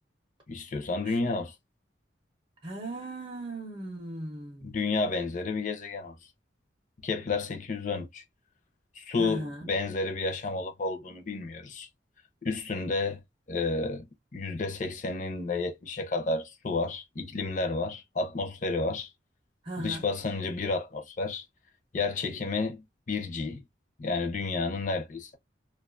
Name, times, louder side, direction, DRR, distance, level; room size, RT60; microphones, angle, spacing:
voice 1, 0.5-1.5 4.6-6.2 7.0-8.2 9.0-11.9 12.4-13.2 13.5-14.1 14.3-19.1 19.8-21.4 21.9-23.6 24.0-25.3, left 3 dB, 40° left, 0.6 m, -31 dB
voice 2, 2.6-4.8 9.2-9.7 19.6-20.1, right 1 dB, 25° right, 0.6 m, -37 dB
2.5 x 2.3 x 2.4 m
head